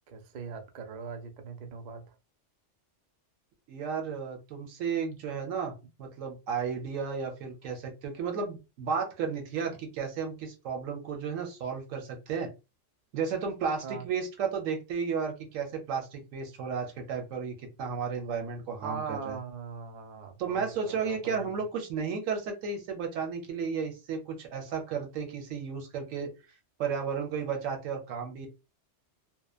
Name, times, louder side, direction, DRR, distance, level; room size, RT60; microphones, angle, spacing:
voice 1, 0.1-2.2 13.8-14.1 18.8-21.6, right 5 dB, 70° right, 0.4 m, -40 dB
voice 2, 3.7-5.7 6.0-12.5 13.1-19.4 20.4-26.3 26.8-28.5, right 6 dB, 90° right, 1.1 m, -33 dB
2.8 x 2.1 x 2.3 m
omnidirectional pair, 1.3 m